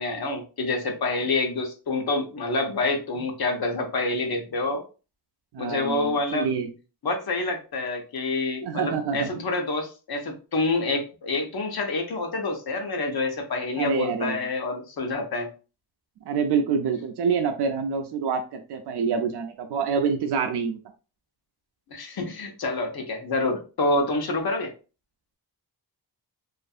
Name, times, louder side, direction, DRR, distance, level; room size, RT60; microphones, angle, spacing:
voice 1, 0.0-4.8 5.6-6.5 7.0-15.5 21.9-24.7, left 2 dB, 60° left, 3 dB, 0.8 m, -27 dB
voice 2, 5.5-6.7 8.6-9.3 13.8-14.4 16.3-20.8, right 6 dB, 70° right, 5 dB, 0.5 m, -26 dB
2.6 x 2.5 x 2.3 m, 0.33 s
cardioid pair, 70°, 41 cm